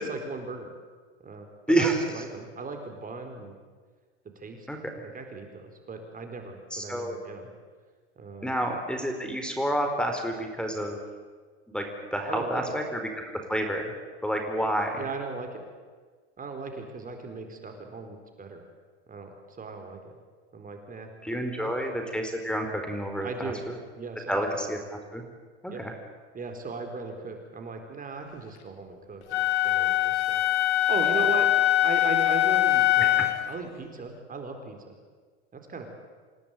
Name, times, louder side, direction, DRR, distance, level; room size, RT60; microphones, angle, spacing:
voice 1, 0.1-0.7 1.2-3.5 4.4-4.7 5.0-7.5 8.2-8.5 12.3-12.8 15.0-15.6 16.4-18.6 19.1-20.0 20.5-21.7 23.2-23.6 23.9-24.8 25.7-25.8 26.3-30.4 30.7-31.5 31.8-34.9 35.5-35.9, right 4 dB, 25° right, 5 dB, 4.2 m, -38 dB
voice 2, 6.7-7.2 8.4-11.0 11.7-11.8 12.1-13.0 13.5-13.9 14.2-15.0 21.2-23.5 24.3-25.2 25.6-25.9, right 1 dB, 5° left, 4 dB, 4.4 m, -29 dB
Wind instrument woodwind instrument, 29.3-33.5, left 14 dB, 75° left, 2.0 m, -23 dB
27.5 x 17.0 x 9.1 m, 1.5 s
hypercardioid pair, 100°, 34 cm